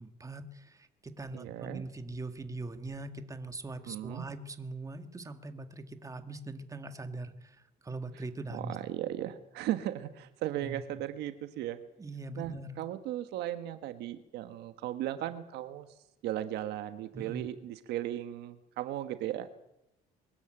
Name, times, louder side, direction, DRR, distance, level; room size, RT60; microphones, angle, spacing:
voice 1, 0.0-8.8 10.6-10.8 12.0-12.8 17.1-17.5, right 2 dB, 20° right, 8 dB, 1.8 m, -41 dB
voice 2, 1.3-1.8 3.9-4.2 8.5-11.8 12.4-15.9 16.2-19.5, right 13 dB, 85° right, 10 dB, 1.4 m, -36 dB
23.0 x 13.0 x 9.0 m, 0.85 s
cardioid pair, 110°, 17 cm